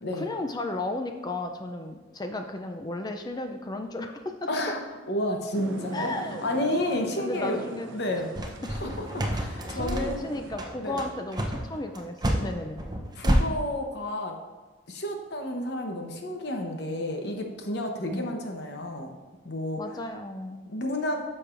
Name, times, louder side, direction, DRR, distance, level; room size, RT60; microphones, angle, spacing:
voice 1, 0.1-4.5 5.9-6.6 7.2-7.9 9.7-12.8 18.1-18.3 19.8-20.7, left 2 dB, 20° left, 5 dB, 0.4 m, -34 dB
voice 2, 4.5-4.8 5.1-6.1 6.4-7.6 7.9-8.3 8.7-10.3 10.8-11.0 13.2-14.4 14.9-19.1 19.4-19.8 20.7-21.2, left 1 dB, 60° left, 3 dB, 0.9 m, -31 dB
sound 1, 5.5-10.5, right 2 dB, 85° right, 0.6 m, -42 dB
sound 2, 8.4-13.4, right 1 dB, 20° right, 0.7 m, -28 dB
10.0 x 6.4 x 2.6 m, 1.3 s
head